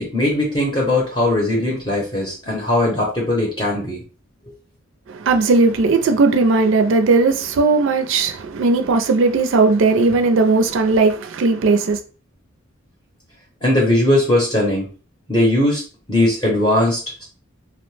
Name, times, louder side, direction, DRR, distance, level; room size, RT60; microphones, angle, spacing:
voice 1, 0.0-4.0 13.6-14.9 15.3-15.8 16.1-17.2, left 1 dB, 20° left, 0.7 m, -19 dB
voice 2, 5.3-12.0, right 3 dB, 60° right, 0.4 m, -17 dB
2.8 x 2.0 x 3.2 m
head